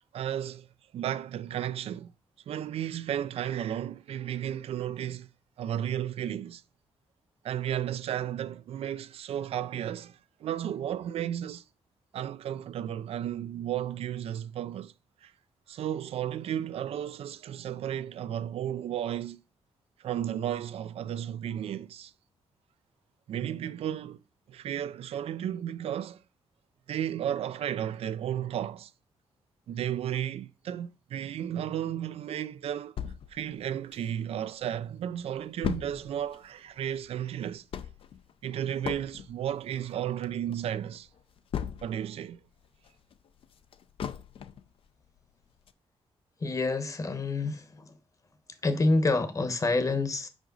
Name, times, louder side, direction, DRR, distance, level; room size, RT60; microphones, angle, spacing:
voice 1, 0.1-0.7 0.9-2.1 2.5-5.3 5.6-6.6 7.4-11.6 12.1-14.9 15.2-15.3 15.7-19.4 20.0-22.1 23.3-24.2 24.5-26.2 26.9-28.9 29.7-33.0 33.3-37.7 38.4-41.1 41.8-42.4, right 10 dB, 75° right, 0.4 m, -33 dB
sound 1, 33.0-34.5 34.9-35.0 35.2-42.2 42.6-44.7 45.2-45.3 45.7-45.8, left 8 dB, 60° left, 0.5 m, -38 dB
voice 2, 46.4-47.9 48.6-50.3, left 3 dB, 30° left, 1.0 m, -27 dB
5.0 x 4.9 x 3.9 m
cardioid pair, 110°, 10 cm